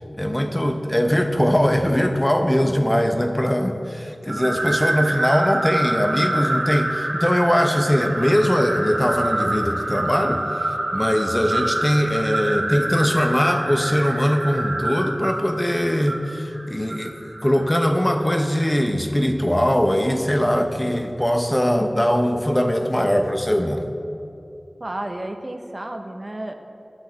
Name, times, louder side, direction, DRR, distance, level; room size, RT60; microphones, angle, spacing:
voice 1, 0.1-23.8, equal, 15° left, 5 dB, 0.8 m, -21 dB
sound 1, 4.3-17.6, right 1 dB, 75° right, 1.7 m, -26 dB
voice 2, 24.8-26.5, right 1 dB, 40° right, 5 dB, 0.9 m, -31 dB
10.0 x 6.3 x 8.5 m, 2.7 s
wide cardioid pair, 45°, 0 cm